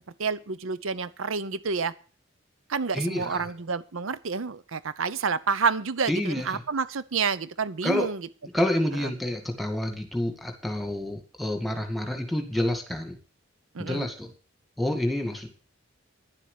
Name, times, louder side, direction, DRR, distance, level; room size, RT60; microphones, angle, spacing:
voice 1, 0.2-1.9 2.7-8.2 13.7-14.1, right 5 dB, 80° right, 15 dB, 0.7 m, -29 dB
voice 2, 2.9-3.5 6.1-6.6 7.8-8.1 8.5-13.2 13.8-14.3 14.8-15.5, left 1 dB, ahead, 5 dB, 2.0 m, -28 dB
11.0 x 7.6 x 8.4 m, 0.38 s
head